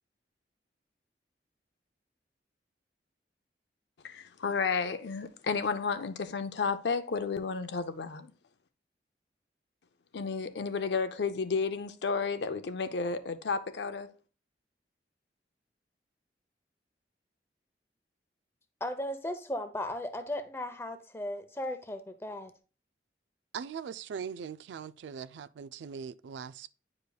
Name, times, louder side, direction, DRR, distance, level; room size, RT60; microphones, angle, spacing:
voice 1, 4.0-8.3 10.1-14.1, left 5 dB, 75° left, 0.5 m, -32 dB
voice 2, 18.8-22.5, left 1 dB, 15° left, 0.6 m, -36 dB
voice 3, 23.5-26.7, right 7 dB, 85° right, 0.3 m, -40 dB
9.3 x 5.0 x 2.3 m
head